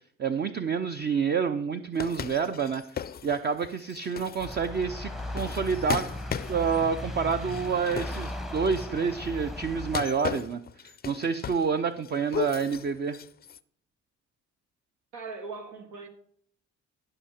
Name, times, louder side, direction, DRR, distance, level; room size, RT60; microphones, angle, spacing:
voice 1, 0.2-2.8 3.2-6.1 6.5-13.2, right 6 dB, 35° right, 0.6 m, -28 dB
sound 1, 1.9-9.0 9.8-11.8 12.0-13.6, left 8 dB, 35° left, 0.4 m, -37 dB
sound 2, 4.4-10.0, left 1 dB, ahead, 0.8 m, -37 dB
voice 2, 15.1-16.1, right 4 dB, 85° right, 1.8 m, -39 dB
15.0 x 5.7 x 4.3 m
cardioid pair, 90°, 30 cm